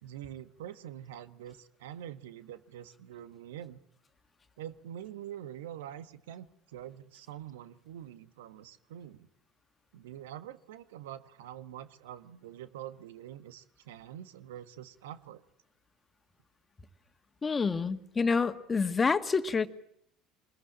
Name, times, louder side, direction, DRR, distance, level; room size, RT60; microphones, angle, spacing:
voice 1, 0.0-3.8 4.6-9.3 9.9-15.4, right 11 dB, 75° right, 12 dB, 1.5 m, -45 dB
voice 2, 17.4-19.7, left 5 dB, 25° left, 10 dB, 1.9 m, -28 dB
26.5 x 21.5 x 8.8 m, 0.71 s
hypercardioid pair, 70°, 0 cm